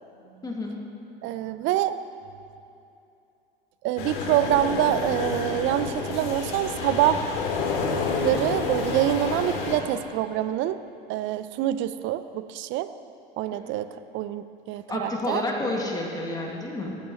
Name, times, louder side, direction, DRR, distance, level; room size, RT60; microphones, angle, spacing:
voice 1, 0.4-0.8 13.5-13.6 14.9-17.0, left 2 dB, 10° left, -1 dB, 2.2 m, -30 dB
voice 2, 1.2-2.0 3.8-7.2 8.2-10.8 11.1-12.9 13.4-13.9 14.1-15.4, right 12 dB, 40° right, 13 dB, 0.7 m, -26 dB
sound 1, 4.0-9.8, left 4 dB, 60° left, 2.4 m, -29 dB
18.0 x 15.0 x 3.2 m, 2.7 s
figure-of-eight pair, 85°, 30 cm